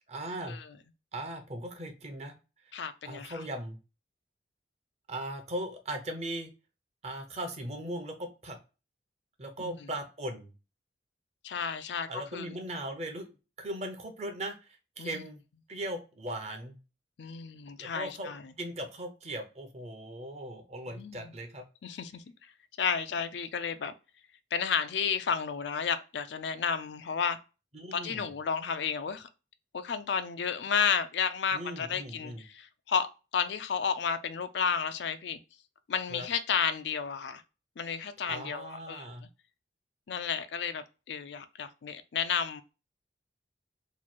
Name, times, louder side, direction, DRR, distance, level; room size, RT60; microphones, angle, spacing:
voice 1, 0.1-0.6 1.1-2.4 2.7-3.8 5.1-6.5 7.0-8.6 9.4-10.5 12.1-13.3 13.6-15.4 15.7-16.8 17.8-21.6 27.7-28.3 31.5-32.4 36.1-36.3 38.3-39.2, right 1 dB, 35° right, 0.7 m, -39 dB
voice 2, 2.7-3.4 9.6-9.8 11.4-12.5 15.0-15.2 17.2-18.4 20.9-21.3 21.8-22.2 22.8-23.9 24.5-27.4 27.9-29.3 29.7-33.1 33.3-35.4 35.9-37.4 37.8-39.1 40.1-42.6, left 6 dB, 75° left, 0.4 m, -32 dB
3.0 x 2.3 x 4.2 m
head